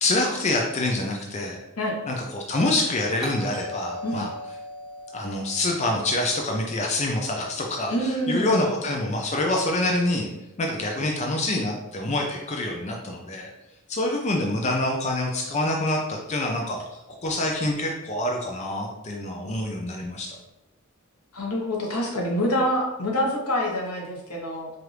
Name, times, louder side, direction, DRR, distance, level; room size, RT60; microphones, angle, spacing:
voice 1, 0.0-1.6 2.1-4.3 5.1-10.3 10.6-13.5 13.9-20.3, left 2 dB, 30° left, 1 dB, 0.4 m, -26 dB
Doorbell, 3.2-7.8, left 1 dB, ahead, 1.0 m, -40 dB
voice 2, 7.9-8.6 21.3-24.7, equal, 90° left, -1 dB, 1.0 m, -26 dB
4.5 x 2.5 x 3.2 m, 0.88 s
head